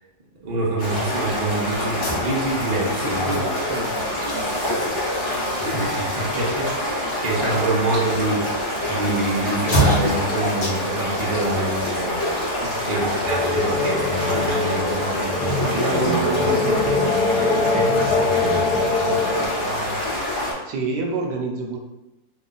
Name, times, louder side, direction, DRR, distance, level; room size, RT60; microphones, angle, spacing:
voice 1, 0.4-3.3 5.6-8.4 8.9-12.3 12.8-15.5 17.7-17.9, right 2 dB, 55° right, -4 dB, 0.4 m, -26 dB
sound 1, 0.8-20.5, left 1 dB, 15° left, 1.0 m, -26 dB
sound 2, 1.8-14.9, equal, 90° left, 0.4 m, -31 dB
voice 2, 2.8-4.9 12.6-13.5 15.6-21.8, right 3 dB, 75° right, 1 dB, 1.2 m, -31 dB
sound 3, 13.2-19.5, left 3 dB, 70° left, 1.1 m, -23 dB
3.0 x 2.4 x 3.7 m, 0.97 s
omnidirectional pair, 2.0 m